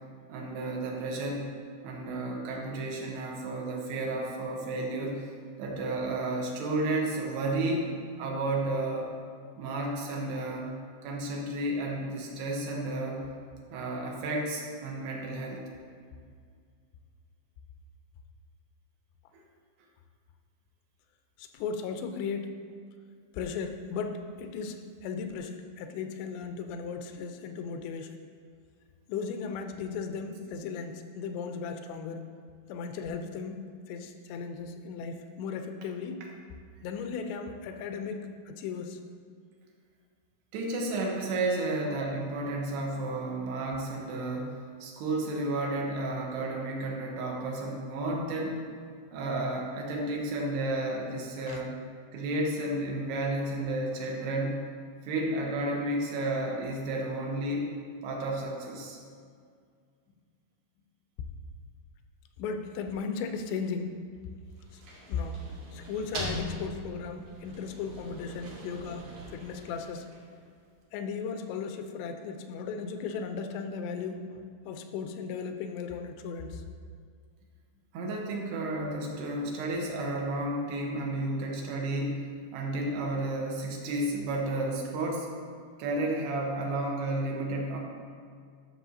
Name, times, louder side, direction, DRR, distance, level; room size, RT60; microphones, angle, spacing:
voice 1, 0.3-1.5 1.8-5.3 5.6-7.9 8.2-9.1 9.6-10.7 11.0-13.3 13.7-15.6 40.5-48.6 49.1-51.7 52.1-54.6 55.0-57.7 58.0-59.0 77.9-85.3 85.8-87.8, right 2 dB, 80° right, 0 dB, 3.0 m, -32 dB
voice 2, 21.4-22.5 23.3-28.2 29.1-32.3 32.7-36.2 36.8-39.0 51.5-51.6 62.4-64.0 64.7-64.8 65.1-65.4 65.7-70.1 70.9-76.6, left 5 dB, 90° left, 6 dB, 2.8 m, -36 dB
sound 1, 64.5-70.5, equal, 65° right, 2.1 m, -41 dB
13.0 x 6.1 x 2.7 m, 2.1 s
omnidirectional pair, 4.8 m